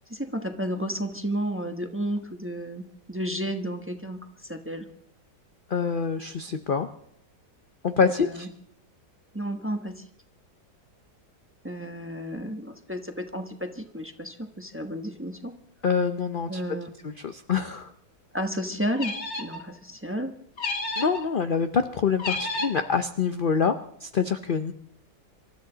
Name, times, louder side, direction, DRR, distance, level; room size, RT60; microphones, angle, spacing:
voice 1, 0.1-4.9 8.1-8.5 9.3-10.0 11.6-15.5 16.5-16.9 18.3-20.3, equal, 10° right, 5 dB, 0.9 m, -32 dB
voice 2, 5.7-6.9 7.8-8.5 15.8-16.6 17.0-17.9 21.0-24.7, left 6 dB, 60° left, 8 dB, 0.5 m, -26 dB
sound 1, 19.0-19.6 20.6-21.2 22.2-22.9, left 2 dB, 40° left, 1.8 m, -31 dB
26.0 x 13.0 x 4.0 m, 0.71 s
omnidirectional pair, 1.9 m